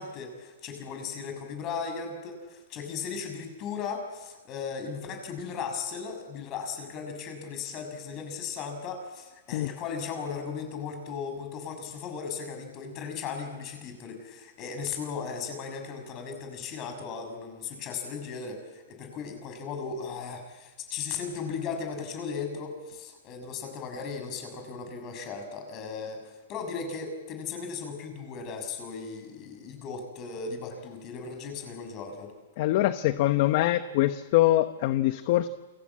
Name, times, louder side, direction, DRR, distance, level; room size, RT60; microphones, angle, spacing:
voice 1, 0.0-32.3, left 5 dB, 30° left, 6 dB, 6.9 m, -37 dB
voice 2, 32.6-35.5, left 15 dB, 50° left, 11 dB, 1.0 m, -24 dB
29.0 x 23.5 x 8.7 m, 1.2 s
hypercardioid pair, 150°, 0 cm